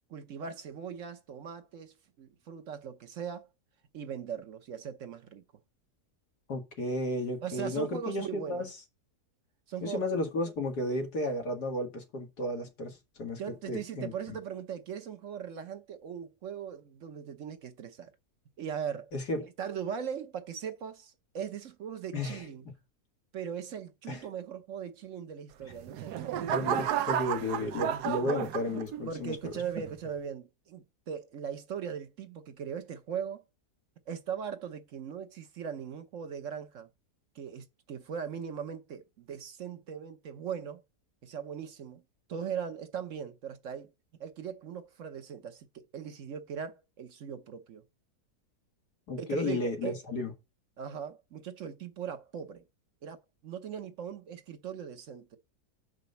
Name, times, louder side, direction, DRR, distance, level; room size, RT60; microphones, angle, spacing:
voice 1, 0.1-3.5 3.9-5.4 7.4-8.7 9.7-10.3 13.4-18.1 18.6-19.1 19.6-22.7 23.3-26.3 29.0-33.4 34.1-36.9 37.3-40.8 41.2-42.0 42.3-43.9 44.2-47.8 49.2-50.0 50.8-52.6 53.0-55.4, right 7 dB, 60° right, 1.1 m, -39 dB
voice 2, 6.5-8.7 9.8-13.4 13.7-14.4 19.1-19.5 22.1-22.5 24.1-24.2 26.5-29.4 49.1-50.3, left 1 dB, 90° left, 2.4 m, -33 dB
sound 1, 25.6-29.2 29.8-30.1, right 9 dB, 85° right, 1.2 m, -32 dB
6.5 x 5.2 x 6.7 m
omnidirectional pair, 1.6 m